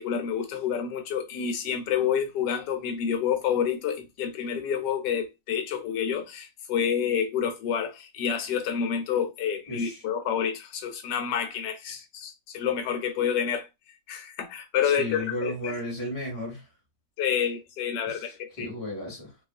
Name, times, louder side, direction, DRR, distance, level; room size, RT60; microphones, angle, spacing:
voice 1, 0.0-13.7 14.1-15.7 17.2-18.7, left 8 dB, 75° left, 1.2 m, -28 dB
voice 2, 9.7-10.0 14.8-16.7 18.0-19.4, left 1 dB, 10° left, 1.2 m, -34 dB
2.8 x 2.3 x 2.5 m
omnidirectional pair, 2.0 m